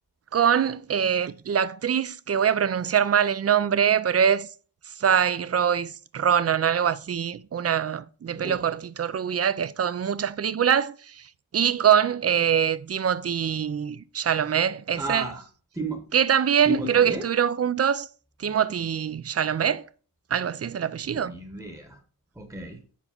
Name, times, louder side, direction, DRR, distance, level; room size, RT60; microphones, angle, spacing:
voice 1, 0.3-4.5 5.0-11.2 11.5-15.3 16.1-18.1 18.4-19.9 20.3-21.4, right 8 dB, 40° right, 0.4 m, -23 dB
voice 2, 8.3-8.6 15.0-15.4 15.7-16.0 16.6-17.2 21.0-22.0 22.4-22.8, right 1 dB, 5° right, 1.0 m, -33 dB
7.3 x 5.4 x 5.8 m
wide cardioid pair, 160°, 39 cm